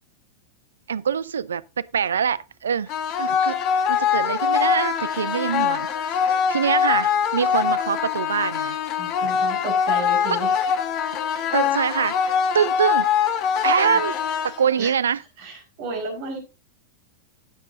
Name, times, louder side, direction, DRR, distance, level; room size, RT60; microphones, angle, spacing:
voice 1, 0.9-2.9 3.2-3.6 3.9-5.9 6.3-8.8 11.5-12.2 12.5-13.1 13.6-14.1 14.4-15.2, right 7 dB, 70° right, 0.4 m, -24 dB
sound 1, 2.9-14.9, left 7 dB, 40° left, 1.6 m, -23 dB
voice 2, 9.0-10.6 13.8-14.0 14.8-14.9 15.4-16.4, right 3 dB, 45° right, 4.9 m, -32 dB
17.0 x 7.3 x 2.6 m
figure-of-eight pair, 90°, 0 cm